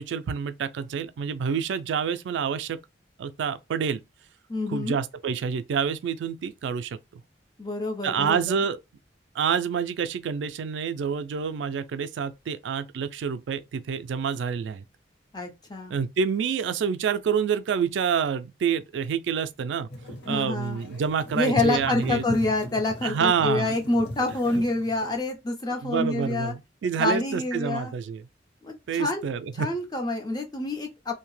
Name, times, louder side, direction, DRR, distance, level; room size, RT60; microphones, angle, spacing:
voice 1, 0.0-2.8 3.2-4.0 4.7-7.0 8.0-8.8 9.3-14.8 15.9-19.9 20.3-22.2 23.0-23.8 24.5-24.6 25.8-28.2 28.9-29.7, right 6 dB, 80° right, 0.3 m, -27 dB
voice 2, 4.5-5.0 7.6-8.6 15.3-15.9 20.2-20.8 21.3-26.5 27.0-27.9 28.6-29.2 29.6-31.1, left 2 dB, 20° left, 0.6 m, -27 dB
sound 1, 19.9-25.2, left 1 dB, 65° left, 1.1 m, -37 dB
2.7 x 2.1 x 3.0 m
head